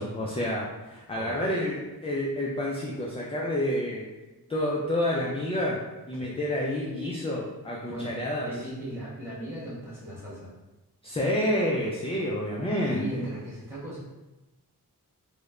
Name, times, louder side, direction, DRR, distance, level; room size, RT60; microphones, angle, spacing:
voice 1, 0.0-4.1 4.5-5.8 6.1-8.5 11.0-13.2, left 1 dB, 15° left, -3 dB, 0.3 m, -29 dB
voice 2, 1.1-1.5 6.1-6.3 7.9-8.1 8.4-10.5 12.9-14.0, right 1 dB, 5° right, -9 dB, 1.3 m, -37 dB
3.0 x 2.1 x 2.4 m, 1.1 s
cardioid pair, 65°, 40 cm